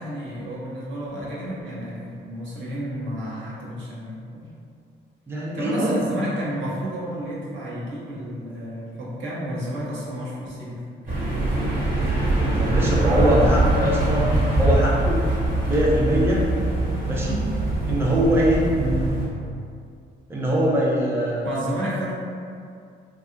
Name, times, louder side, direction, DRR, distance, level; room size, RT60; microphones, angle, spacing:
voice 1, 0.0-4.5 5.5-11.3 11.9-12.2 13.0-13.8 18.8-19.2 21.4-22.1, equal, 75° right, -7 dB, 0.9 m, -31 dB
voice 2, 5.3-6.0 12.6-14.2 14.6-15.2 15.7-16.4 17.1-17.5 17.8-18.6 20.3-21.5, equal, 10° right, -5 dB, 0.5 m, -22 dB
sound 1, 11.1-19.3, right 2 dB, 40° right, 1.0 m, -22 dB
2.7 x 2.3 x 2.6 m, 2.4 s
cardioid pair, 90°, 20 cm